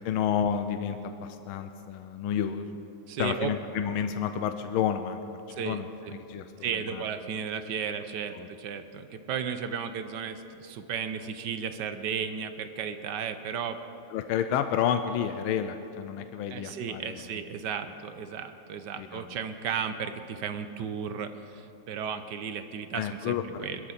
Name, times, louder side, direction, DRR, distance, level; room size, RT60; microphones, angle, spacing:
voice 1, 0.0-2.7 3.2-6.5 6.7-7.1 8.4-8.5 14.1-17.2 19.0-19.3 22.9-23.8, left 8 dB, 85° left, 8 dB, 1.5 m, -30 dB
voice 2, 3.1-3.5 5.5-6.1 6.6-13.8 16.5-23.8, right 7 dB, 65° right, 9 dB, 1.2 m, -34 dB
21.5 x 13.0 x 4.2 m, 2.9 s
omnidirectional pair, 2.3 m